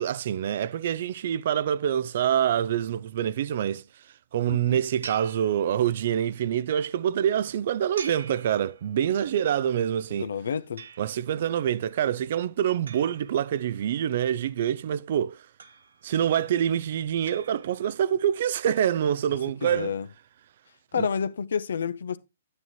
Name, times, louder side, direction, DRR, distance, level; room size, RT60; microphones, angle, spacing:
voice 1, 0.0-3.8 4.3-10.3 11.0-15.5 16.0-19.9 21.0-21.1, right 9 dB, 55° right, 0.4 m, -26 dB
voice 2, 4.5-4.8 10.2-10.9 19.3-20.1 20.9-22.2, left 7 dB, 70° left, 0.6 m, -30 dB
sound 1, 5.0-6.2 8.0-9.2 10.8-11.5 12.9-14.0 15.6-16.3 17.3-18.1, right 6 dB, 75° right, 1.0 m, -45 dB
9.5 x 9.2 x 3.0 m
hypercardioid pair, 130°, 0 cm